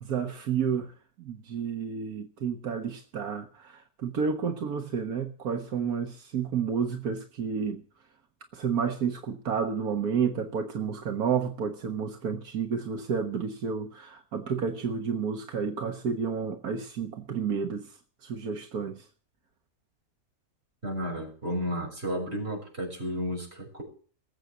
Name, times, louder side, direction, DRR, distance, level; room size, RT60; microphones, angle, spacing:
voice 1, 0.0-0.9 1.2-7.8 8.5-19.1, right 6 dB, 85° right, 1.8 m, -31 dB
voice 2, 20.8-23.8, equal, 40° right, 6.9 m, -32 dB
20.5 x 8.1 x 7.3 m
omnidirectional pair, 1.6 m